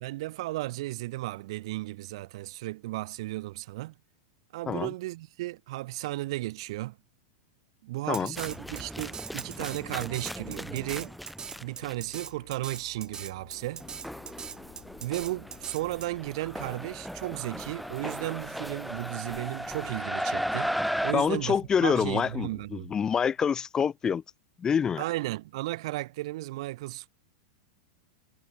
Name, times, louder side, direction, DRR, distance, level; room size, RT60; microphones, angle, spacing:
voice 1, 0.0-3.9 4.5-7.0 7.8-11.2 11.6-13.8 15.0-20.7 21.0-22.9 25.0-27.1, right 18 dB, 65° right, 1.1 m, -34 dB
Drum kit, 8.1-16.1, right 7 dB, 25° right, 1.3 m, -41 dB
sound 1, 8.3-12.1 13.5-21.1, equal, ahead, 1.1 m, -36 dB
sound 2, 11.4-22.7, left 32 dB, 50° left, 2.5 m, -55 dB
voice 2, 21.1-24.2 24.6-25.0, left 7 dB, 20° left, 0.3 m, -26 dB
hypercardioid pair, 110°, 3 cm